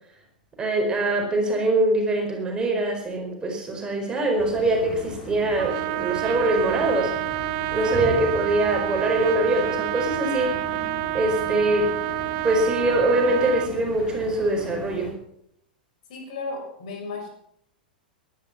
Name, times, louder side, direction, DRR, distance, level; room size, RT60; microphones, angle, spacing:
voice 1, 0.6-7.1 7.7-10.6 11.1-11.9 12.4-15.1, right 2 dB, 15° right, 3 dB, 4.5 m, -23 dB
sound 1, 4.4-15.1, left 2 dB, 20° left, 6.2 m, -38 dB
Trumpet, 5.6-13.7, right 17 dB, 45° right, 0.8 m, -28 dB
voice 2, 16.1-17.3, left 3 dB, 55° left, 2 dB, 6.2 m, -34 dB
18.5 x 12.5 x 6.0 m, 0.72 s
figure-of-eight pair, 95°, 5 cm